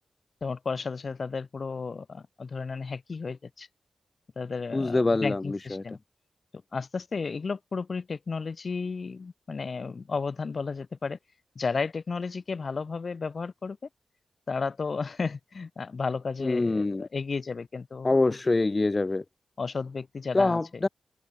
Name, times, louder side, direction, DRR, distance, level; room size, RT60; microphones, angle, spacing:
voice 1, 0.4-3.7 4.4-6.0 6.7-11.2 11.6-13.8 14.5-18.4 19.6-20.8, left 4 dB, 55° left, 7.4 m, -33 dB
voice 2, 4.7-5.8 16.4-17.1 18.0-19.2 20.3-20.9, left 2 dB, 30° left, 1.5 m, -25 dB
open air
cardioid pair, 75°, 0 cm